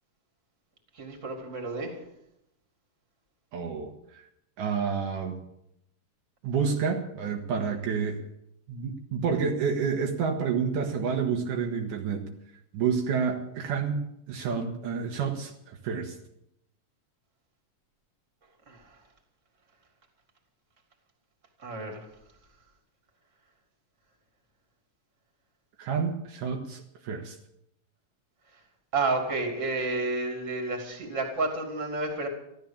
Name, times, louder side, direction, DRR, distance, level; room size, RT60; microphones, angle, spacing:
voice 1, 1.0-2.0 18.7-18.8 21.6-22.1 28.9-32.3, right 3 dB, 25° right, 3 dB, 3.0 m, -30 dB
voice 2, 3.5-4.2 4.6-5.4 6.4-8.2 8.7-12.3 12.7-14.0 14.3-16.2 25.8-27.4, right 6 dB, 75° right, 2 dB, 2.9 m, -29 dB
14.5 x 13.0 x 7.2 m, 0.78 s
omnidirectional pair, 3.8 m